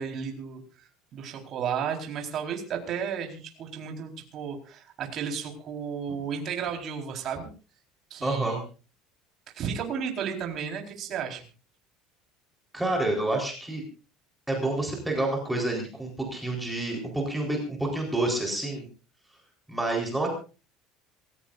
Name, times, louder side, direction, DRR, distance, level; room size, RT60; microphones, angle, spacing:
voice 1, 0.0-7.5 8.1-8.6 9.5-11.4, right 7 dB, 35° right, 3 dB, 4.3 m, -33 dB
voice 2, 8.2-8.6 12.7-13.8 14.5-18.9 19.7-20.3, right 2 dB, 5° right, 0 dB, 4.1 m, -28 dB
26.5 x 15.5 x 2.6 m, 0.35 s
cardioid pair, 175°, 0 cm